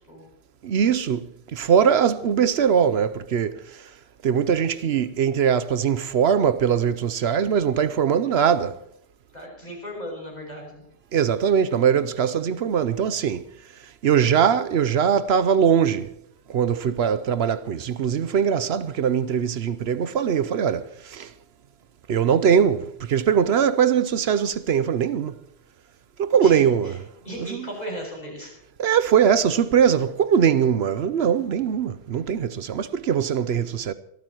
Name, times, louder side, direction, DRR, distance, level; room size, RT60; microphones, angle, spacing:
voice 1, 0.6-3.9 4.2-8.8 11.1-13.5 13.8-16.2 16.5-21.3 22.1-25.4 26.2-27.0 28.8-33.9, right 8 dB, 75° right, 0.9 m, -21 dB
voice 2, 9.3-10.8 26.4-27.0 27.2-28.5, equal, 40° left, 7.0 m, -36 dB
25.5 x 13.5 x 3.0 m
omnidirectional pair, 1.1 m